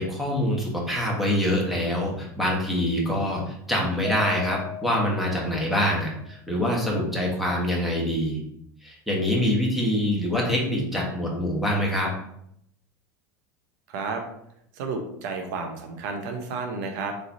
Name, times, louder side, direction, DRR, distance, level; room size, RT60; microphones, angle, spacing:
voice 1, 0.0-8.4 8.8-12.1, left 1 dB, ahead, -3 dB, 1.4 m, -25 dB
Mallet percussion, 4.0-6.3, left 5 dB, 30° right, 0.7 m, -37 dB
voice 2, 13.9-14.2 14.7-17.1, right 4 dB, 70° right, 4 dB, 0.9 m, -31 dB
3.8 x 3.4 x 2.8 m, 0.74 s
hypercardioid pair, 100°, 10 cm